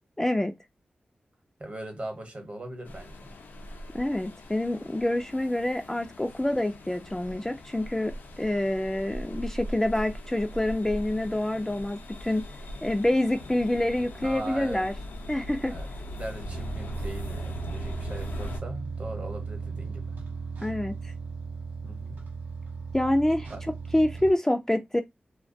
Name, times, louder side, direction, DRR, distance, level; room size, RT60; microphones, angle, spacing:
voice 1, 0.2-0.5 3.9-12.4 12.8-14.9 15.3-15.8 20.6-21.1 22.9-23.5 23.9-25.0, left 1 dB, 15° left, 0.3 m, -27 dB
voice 2, 1.6-3.3 14.2-14.8 15.7-20.0 21.8-22.2 23.5-23.6, right 1 dB, 45° right, 1.0 m, -39 dB
sound 1, 2.8-18.6, left 1 dB, 85° left, 0.5 m, -40 dB
sound 2, 16.4-24.3, right 4 dB, 70° right, 0.6 m, -36 dB
2.3 x 2.1 x 2.6 m
cardioid pair, 60°, 3 cm